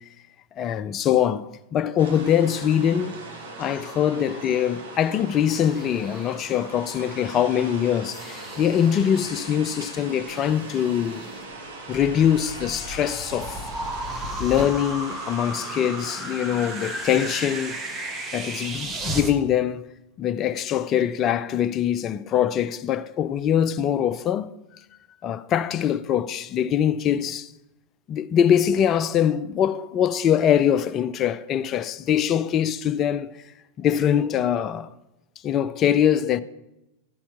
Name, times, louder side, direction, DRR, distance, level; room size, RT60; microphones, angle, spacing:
voice 1, 0.6-3.2 3.6-11.2 11.9-13.6 14.4-17.8 18.3-19.9 20.2-24.5 25.2-27.5 28.1-33.3 33.8-34.9 35.4-36.4, left 9 dB, 30° left, 0.4 m, -23 dB
sound 1, 2.0-18.7, right 2 dB, 60° right, 1.3 m, -40 dB
sound 2, 5.4-6.6 7.1-9.4 9.8-11.7 12.9-13.0 13.3-14.7 17.0-17.2 17.6-18.5, left 2 dB, 5° right, 1.5 m, -44 dB
sound 3, 11.9-19.3, right 1 dB, 20° right, 1.0 m, -33 dB
12.5 x 4.4 x 5.9 m
figure-of-eight pair, 90°, 0 cm